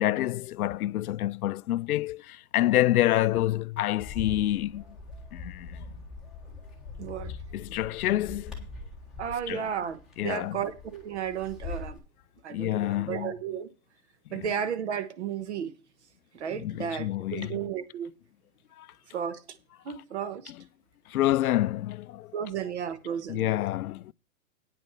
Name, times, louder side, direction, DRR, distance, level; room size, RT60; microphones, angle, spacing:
voice 1, 0.0-4.8 5.3-5.9 7.5-8.7 9.5-9.7 10.2-10.6 12.5-13.3 14.3-14.5 16.5-17.7 18.8-18.9 20.2-20.6 21.1-22.3 23.3-24.1, left 14 dB, 90° left, 0.6 m, -28 dB
Bird, 4.0-12.0, left 4 dB, ahead, 1.1 m, -42 dB
voice 2, 7.0-7.3 9.2-12.0 12.4-13.7 14.3-15.7 16.3-18.1 19.1-19.4 19.8-20.5 22.3-23.5, right 8 dB, 50° right, 1.1 m, -33 dB
9.3 x 6.0 x 7.0 m
hypercardioid pair, 180°, 43 cm